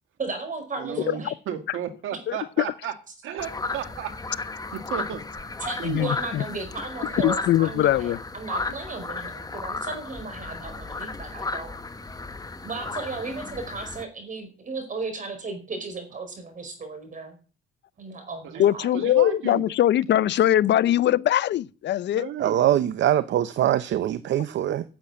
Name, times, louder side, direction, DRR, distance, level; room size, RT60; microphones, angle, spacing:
voice 1, 0.2-1.3 5.6-11.8 12.6-17.3 18.0-19.1, right 3 dB, 40° right, 4.9 m, -35 dB
voice 2, 0.8-2.9 3.2-4.1 4.4-4.5 4.7-5.2 5.8-6.0 18.4-18.7 18.9-19.7 22.1-22.6, right 9 dB, 90° right, 2.0 m, -33 dB
sound 1, 3.4-14.0, left 3 dB, 20° left, 1.1 m, -34 dB
voice 3, 5.8-6.4 7.2-8.2 18.6-22.3, left 12 dB, 65° left, 0.6 m, -21 dB
voice 4, 22.4-24.8, right 12 dB, 70° right, 0.7 m, -23 dB
10.5 x 7.9 x 8.7 m
cardioid pair, 90°, 20 cm